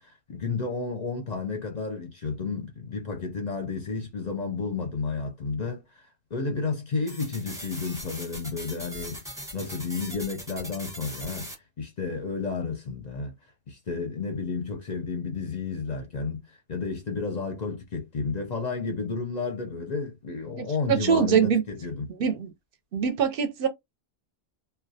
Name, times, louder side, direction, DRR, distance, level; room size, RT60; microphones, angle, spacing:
voice 1, 0.0-13.3 13.7-22.1, left 4 dB, 50° left, 0.5 m, -32 dB
sound 1, 7.1-11.5, right 1 dB, 5° right, 0.7 m, -40 dB
voice 2, 20.6-21.6 22.2-22.5 22.9-23.7, right 7 dB, 60° right, 0.7 m, -23 dB
2.2 x 2.1 x 2.6 m
omnidirectional pair, 1.1 m